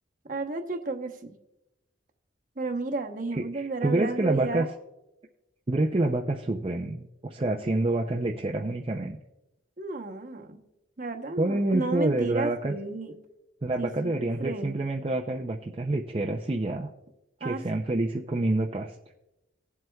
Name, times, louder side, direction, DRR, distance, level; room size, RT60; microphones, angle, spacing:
voice 1, 0.3-1.4 2.6-4.7 9.8-10.6 11.0-13.1 13.8-14.8 17.4-17.6, right 3 dB, 45° right, 5 dB, 0.9 m, -32 dB
voice 2, 3.3-4.7 5.7-9.2 11.4-12.7 13.6-16.9 17.4-18.9, right 2 dB, 30° right, 1 dB, 0.5 m, -27 dB
19.0 x 7.7 x 2.3 m, 0.96 s
head